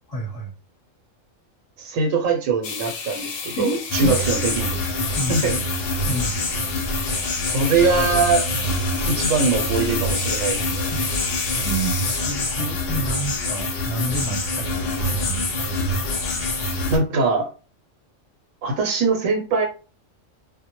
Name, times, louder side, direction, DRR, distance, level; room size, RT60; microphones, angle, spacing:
voice 1, 0.1-0.5 3.6-4.1 5.2-5.6 6.1-6.4 10.9-11.1 11.6-15.7, right 1 dB, 25° left, -1 dB, 0.7 m, -30 dB
voice 2, 1.8-4.8 5.3-5.6 7.4-8.5 9.1-10.9 16.9-17.5 18.6-19.7, right 4 dB, 85° right, 3 dB, 1.0 m, -22 dB
sound 1, 2.6-12.2, left 5 dB, 90° left, 1.0 m, -33 dB
sound 2, 3.9-17.0, left 1 dB, 60° left, 0.7 m, -25 dB
2.1 x 2.1 x 2.9 m, 0.34 s
omnidirectional pair, 1.3 m